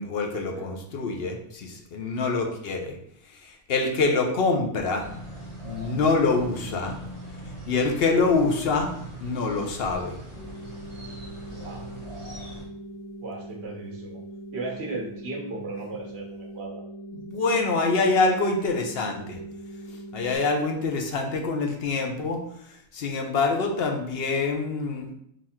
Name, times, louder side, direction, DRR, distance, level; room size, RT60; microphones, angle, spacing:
voice 1, 0.0-3.0 3.7-5.1 5.6-6.9 7.7-10.1 17.3-19.4 20.1-22.4 22.9-25.1, left 3 dB, 65° left, 3 dB, 0.9 m, -25 dB
sound 1, 5.0-12.6, right 1 dB, 35° right, 1.2 m, -41 dB
sound 2, 10.4-20.4, right 1 dB, ahead, 0.4 m, -41 dB
voice 2, 11.5-11.9 13.2-14.2 14.5-16.8, right 2 dB, 70° right, 0 dB, 1.3 m, -36 dB
4.0 x 2.5 x 4.2 m, 0.72 s
omnidirectional pair, 1.1 m